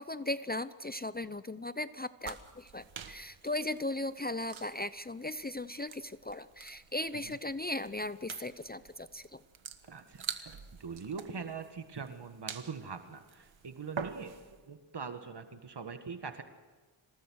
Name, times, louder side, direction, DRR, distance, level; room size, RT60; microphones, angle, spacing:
voice 1, 0.0-9.4, left 2 dB, 20° left, 14 dB, 0.6 m, -37 dB
sound 1, 2.2-14.6, right 6 dB, 90° right, 1.5 m, -47 dB
voice 2, 9.8-14.4 14.7-16.4, right 5 dB, 60° right, 8 dB, 1.7 m, -43 dB
26.5 x 19.0 x 6.4 m, 1.4 s
cardioid pair, 60°, 46 cm